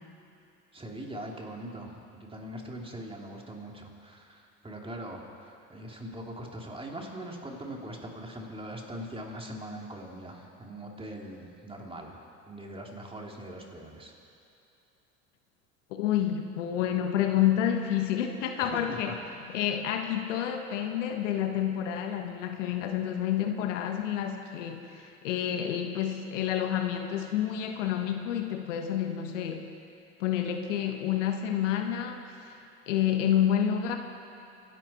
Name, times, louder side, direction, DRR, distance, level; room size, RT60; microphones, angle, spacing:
voice 1, 0.7-12.2 12.5-14.1 18.6-19.3, right 1 dB, 15° right, 0 dB, 3.0 m, -41 dB
voice 2, 15.9-19.1 19.5-29.7 30.2-32.6 32.9-34.0, left 10 dB, 75° left, 5 dB, 1.3 m, -29 dB
26.0 x 11.5 x 4.4 m, 2.8 s
hypercardioid pair, 75°, 37 cm